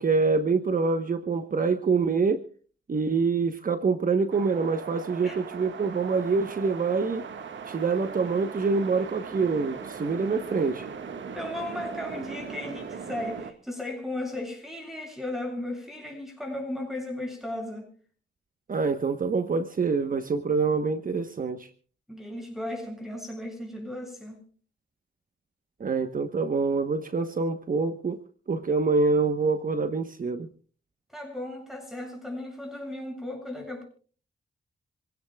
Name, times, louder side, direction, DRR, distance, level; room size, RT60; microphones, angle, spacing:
voice 1, 0.0-2.5 2.9-7.3 7.7-10.9 18.7-21.7 25.8-28.2 28.5-30.5, right 4 dB, 45° right, 1.2 m, -26 dB
sound 1, 4.3-13.5, right 6 dB, 80° right, 1.7 m, -39 dB
voice 2, 11.3-17.9 22.1-24.4 31.1-33.8, left 1 dB, ahead, 8.0 m, -35 dB
27.0 x 17.0 x 2.3 m
cardioid pair, 90°, 19 cm